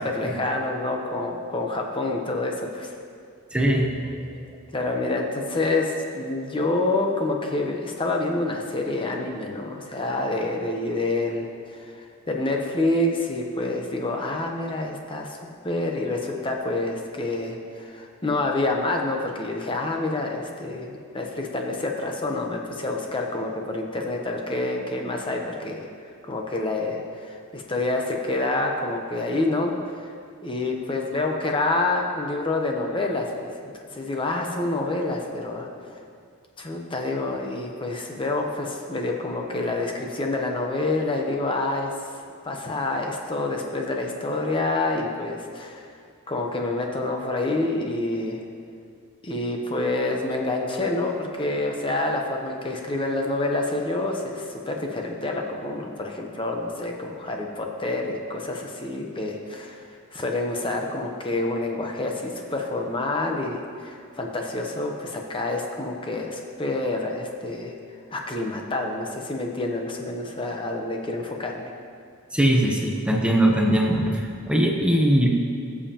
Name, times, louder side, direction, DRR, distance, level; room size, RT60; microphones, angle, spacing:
voice 1, 0.0-3.0 4.7-25.9 26.2-30.1 30.4-35.7 36.6-42.2 42.4-45.9 46.3-48.4 49.2-67.8 68.1-71.7, left 2 dB, 25° left, 1 dB, 0.8 m, -27 dB
voice 2, 3.5-4.0 72.3-75.3, right 1 dB, 5° right, 0 dB, 0.8 m, -21 dB
18.5 x 7.2 x 2.9 m, 2.2 s
head